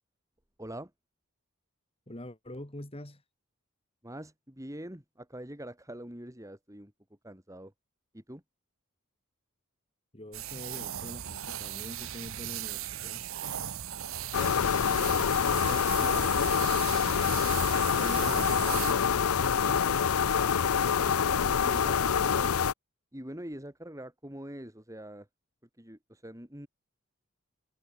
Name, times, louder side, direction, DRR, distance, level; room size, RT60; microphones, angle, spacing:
voice 1, 0.6-0.9 4.0-6.9 7.2-7.7 8.1-8.4 14.4-16.7 20.8-22.5 23.1-25.3 25.8-26.7, right 1 dB, 15° right, 3.9 m, -44 dB
voice 2, 2.1-3.2 10.1-13.3 17.6-19.9, left 1 dB, 25° left, 2.4 m, -44 dB
sound 1, 10.3-18.9, right 10 dB, 70° right, 0.9 m, -37 dB
sound 2, 14.3-22.7, left 7 dB, 85° left, 0.6 m, -26 dB
head